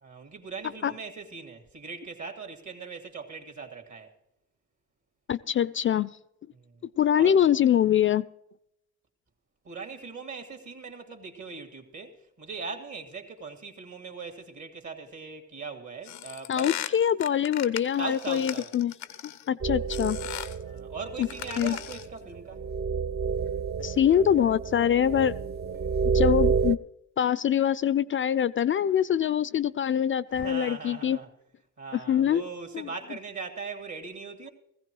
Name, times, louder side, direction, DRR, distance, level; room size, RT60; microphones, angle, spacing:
voice 1, 0.0-4.1 6.5-6.7 7.2-7.4 9.6-16.8 18.0-18.7 20.6-22.6 30.3-31.3 31.8-34.5, right 4 dB, 55° right, 2.3 m, -40 dB
voice 2, 5.3-6.1 7.0-8.3 16.5-18.9 19.2-20.2 21.2-21.3 21.6-21.8 23.8-25.3 26.1-26.8 27.2-31.2 31.9-32.4 32.7-32.9, left 9 dB, 40° left, 0.4 m, -24 dB
sound 1, 16.0-19.5 19.9-20.6 21.2-22.2, left 12 dB, 90° left, 0.6 m, -38 dB
sound 2, 19.6-26.8, right 5 dB, 30° right, 0.4 m, -29 dB
17.5 x 15.5 x 3.1 m
hypercardioid pair, 45°, 33 cm